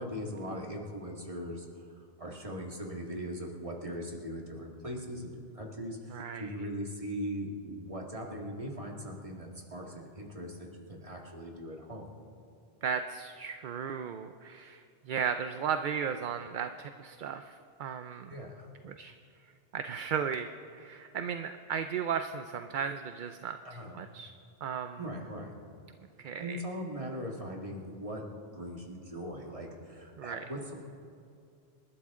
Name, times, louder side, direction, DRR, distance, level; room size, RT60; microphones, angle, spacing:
voice 1, 0.0-1.7 2.0-10.6 10.9-12.1 18.3-18.7 23.6-24.0 25.0-25.5 26.4-28.2 28.5-30.7, equal, 30° right, 0 dB, 2.0 m, -40 dB
voice 2, 6.1-6.5 12.8-18.3 18.8-19.1 19.7-20.5 20.7-23.6 23.9-24.3 24.6-25.0 26.2-26.6 30.2-30.4, right 7 dB, 55° right, 8 dB, 0.6 m, -35 dB
27.5 x 12.5 x 3.7 m, 2.5 s
omnidirectional pair, 1.1 m